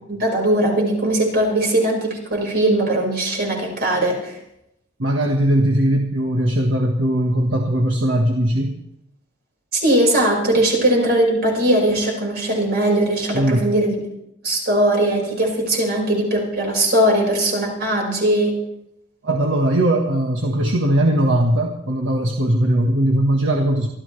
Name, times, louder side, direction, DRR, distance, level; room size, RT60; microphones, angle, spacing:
voice 1, 0.1-4.4 9.7-14.0 14.4-18.6, right 1 dB, 55° right, -1 dB, 5.3 m, -19 dB
voice 2, 5.0-8.8 13.3-13.6 19.2-23.9, right 1 dB, 75° right, 2 dB, 1.5 m, -19 dB
24.5 x 13.5 x 3.3 m, 0.83 s
head